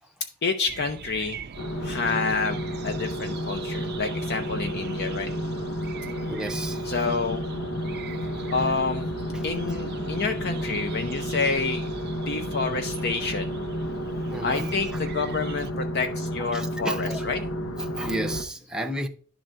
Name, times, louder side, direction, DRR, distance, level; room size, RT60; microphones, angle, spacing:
voice 1, 0.4-1.4 1.8-5.3 6.8-7.4 8.5-9.1 9.4-13.5 14.4-17.4, left 4 dB, 50° left, 0.6 m, -28 dB
sound 1, 0.7-15.7, right 5 dB, 50° right, 0.5 m, -41 dB
sound 2, 1.6-18.4, equal, 70° left, 0.9 m, -31 dB
voice 2, 6.3-6.8 8.2-8.3 9.3-9.4 14.1-15.0 16.4-17.3 17.7-19.1, right 1 dB, 5° right, 0.7 m, -33 dB
11.0 x 3.9 x 4.4 m
head